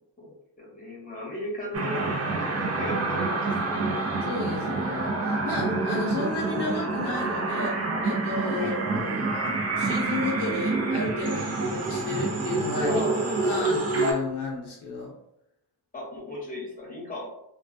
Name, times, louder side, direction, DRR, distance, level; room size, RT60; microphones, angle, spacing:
voice 1, 0.2-4.0 8.5-8.8 11.4-11.5 12.8-13.6 15.9-17.3, left 1 dB, 20° left, -3 dB, 0.9 m, -36 dB
sound 1, 1.7-14.1, right 3 dB, 35° right, 0.5 m, -27 dB
voice 2, 4.2-13.0 13.4-15.1, left 3 dB, 60° left, -2 dB, 0.6 m, -33 dB
2.2 x 2.2 x 2.5 m, 0.81 s
wide cardioid pair, 95°, 46 cm